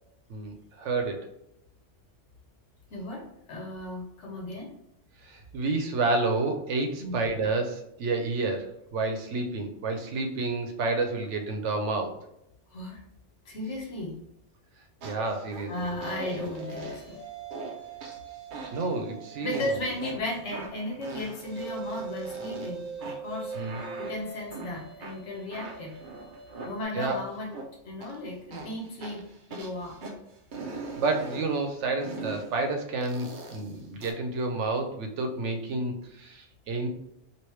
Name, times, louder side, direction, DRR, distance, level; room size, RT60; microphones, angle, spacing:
voice 1, 0.3-1.3 5.2-12.2 15.0-15.9 18.7-19.8 23.5-23.8 26.9-27.2 30.7-36.9, right 3 dB, 85° right, 5 dB, 0.9 m, -30 dB
voice 2, 2.9-4.7 7.0-7.2 12.7-13.0 13.4-14.2 15.7-17.2 19.4-25.9 26.6-27.5 27.8-29.2 29.5-30.0, left 1 dB, 80° left, 0 dB, 1.2 m, -35 dB
sound 1, 15.0-15.7 16.0-17.1 17.5-17.8 18.0-19.0 19.5-20.1 20.5-22.7 23.0-24.7 25.0-27.7 28.0-28.1 28.5-30.1 30.5-31.5 32.0-32.5 33.0-34.1, right 2 dB, 55° right, 0.7 m, -41 dB
sound 2, 15.6-20.0 21.4-26.8, right 4 dB, 25° left, 1.1 m, -42 dB
3.1 x 2.8 x 3.1 m, 0.80 s
omnidirectional pair, 1.2 m